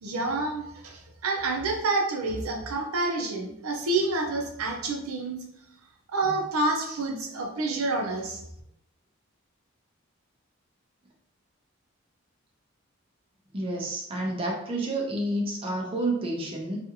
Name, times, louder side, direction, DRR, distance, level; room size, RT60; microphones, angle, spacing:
voice 1, 0.0-5.4 6.1-8.4, right 2 dB, 85° right, 2 dB, 0.5 m, -28 dB
voice 2, 13.5-16.8, right 1 dB, 25° right, -1 dB, 0.4 m, -29 dB
2.6 x 2.4 x 2.7 m, 0.76 s
head